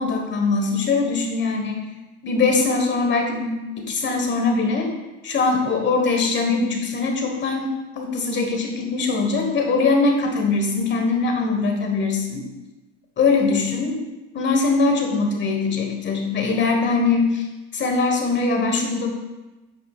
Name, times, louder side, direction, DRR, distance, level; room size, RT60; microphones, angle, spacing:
voice 1, 0.0-1.8 2.2-4.9 5.2-12.4 13.2-14.0 14.3-17.4 17.7-19.1, left 4 dB, 35° left, 2 dB, 1.5 m, -22 dB
8.7 x 5.4 x 2.5 m, 1.1 s
supercardioid pair, 100°, 33 cm